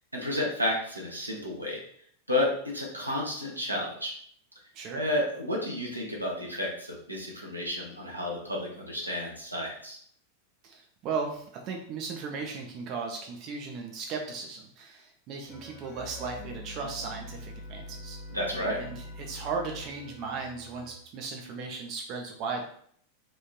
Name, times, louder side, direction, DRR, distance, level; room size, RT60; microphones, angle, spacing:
voice 1, 0.1-1.8 2.3-4.1 4.9-10.0 18.3-18.8, left 1 dB, 85° right, -2 dB, 0.7 m, -31 dB
voice 2, 10.6-18.2 18.8-22.7, right 4 dB, 40° right, 1 dB, 0.4 m, -36 dB
sound 1, 15.5-21.0, left 1 dB, 35° left, 0.6 m, -44 dB
3.0 x 2.5 x 2.2 m, 0.62 s
figure-of-eight pair, 90°, 0 cm